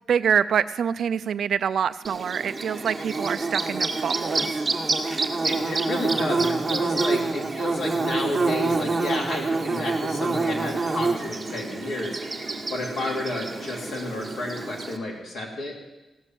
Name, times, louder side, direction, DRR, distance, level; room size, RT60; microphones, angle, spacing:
voice 1, 0.1-4.5, right 7 dB, 70° right, 12 dB, 0.4 m, -25 dB
Bird / Buzz, 2.0-15.0, right 3 dB, 25° right, 1.4 m, -27 dB
voice 2, 5.4-15.8, left 2 dB, 70° left, -2 dB, 3.1 m, -31 dB
16.5 x 6.1 x 9.0 m, 1.0 s
cardioid pair, 105°, 0 cm